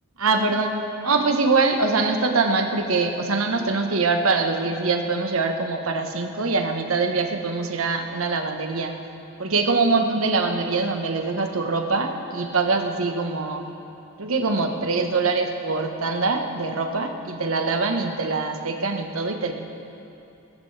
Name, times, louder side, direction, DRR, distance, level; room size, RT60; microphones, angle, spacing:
voice 1, 0.2-0.8 1.0-8.9 9.4-13.6 14.2-19.5, right 3 dB, 80° right, 4 dB, 1.2 m, -23 dB
22.0 x 14.0 x 3.4 m, 2.8 s
head